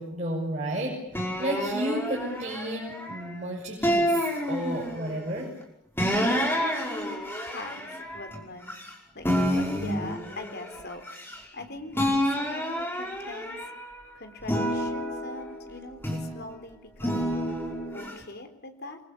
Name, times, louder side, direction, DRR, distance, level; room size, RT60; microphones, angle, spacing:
voice 1, 0.0-5.5, right 1 dB, 35° right, -3 dB, 6.8 m, -32 dB
sound 1, 1.1-3.3 3.8-5.2 6.0-8.9 9.2-11.6 11.9-13.9 14.4-16.4 17.0-18.1, equal, 10° left, 5.4 m, -29 dB
voice 2, 6.0-8.8 9.1-9.3 9.5-11.1 11.5-13.6 14.1-17.4 17.9-19.0, left 2 dB, 50° left, 7 dB, 4.0 m, -42 dB
28.5 x 24.0 x 8.7 m, 0.80 s
head